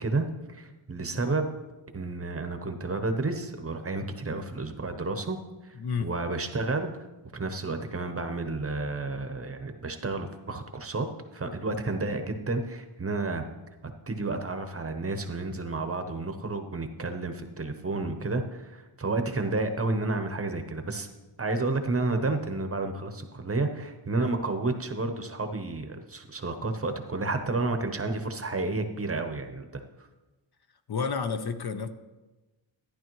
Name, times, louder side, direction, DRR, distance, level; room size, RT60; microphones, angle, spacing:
voice 1, 0.0-1.5 1.9-5.4 5.6-5.7 6.0-6.9 7.3-11.1 11.3-13.4 14.1-21.1 21.4-30.1, right 3 dB, 30° right, 7 dB, 0.8 m, -31 dB
voice 2, 5.8-6.2 30.9-31.9, left 5 dB, 50° left, 9 dB, 0.6 m, -30 dB
14.0 x 10.0 x 3.0 m, 1.1 s
wide cardioid pair, 135°, 50 cm